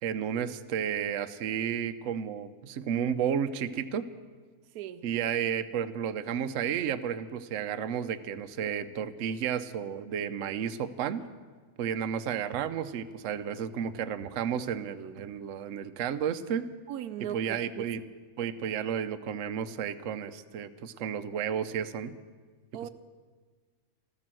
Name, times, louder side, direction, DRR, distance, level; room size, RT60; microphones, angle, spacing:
voice 1, 0.0-4.1 5.0-11.2 11.8-16.7 17.3-18.0 18.4-22.1, right 8 dB, 65° right, 10 dB, 0.9 m, -32 dB
voice 2, 16.9-17.9 22.7-22.9, right 11 dB, 85° right, 13 dB, 1.1 m, -38 dB
14.0 x 13.5 x 7.6 m, 1.5 s
omnidirectional pair, 1.6 m